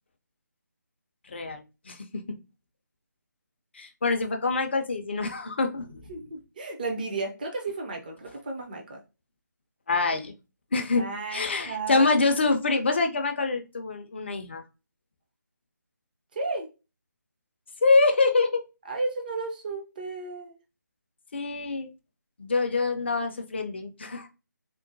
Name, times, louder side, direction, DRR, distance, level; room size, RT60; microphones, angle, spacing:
voice 1, 1.2-2.4 3.7-6.1 9.9-10.3 10.7-14.6 17.8-18.6 21.3-21.9 22.4-24.3, left 3 dB, 35° left, 5 dB, 0.4 m, -25 dB
voice 2, 6.1-9.0 11.0-12.1 16.3-16.7 18.9-20.5, right 3 dB, 25° right, 1 dB, 0.5 m, -33 dB
3.7 x 2.0 x 2.6 m, 0.29 s
figure-of-eight pair, 155°, 10 cm